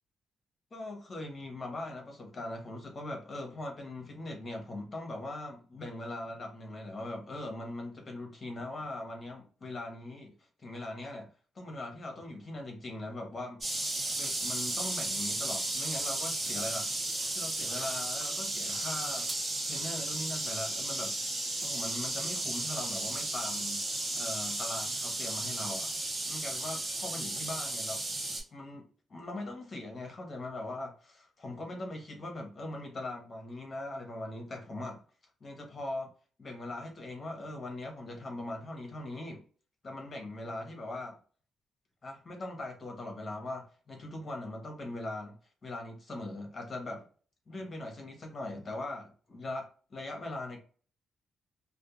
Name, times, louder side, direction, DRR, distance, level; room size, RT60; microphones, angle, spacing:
voice 1, 0.7-10.3 10.6-11.3 11.5-17.0 17.3-19.3 19.6-21.1 21.6-23.8 24.1-26.0 26.2-28.0 28.5-35.0 35.4-36.1 36.4-39.4 39.8-41.2 42.0-45.4 45.6-47.0 47.5-50.6, left 2 dB, 30° left, 2 dB, 0.9 m, -40 dB
sound 1, 13.6-28.4, right 2 dB, 25° right, 1.1 m, -34 dB
2.4 x 2.1 x 2.9 m, 0.39 s
cardioid pair, 130°, 0 cm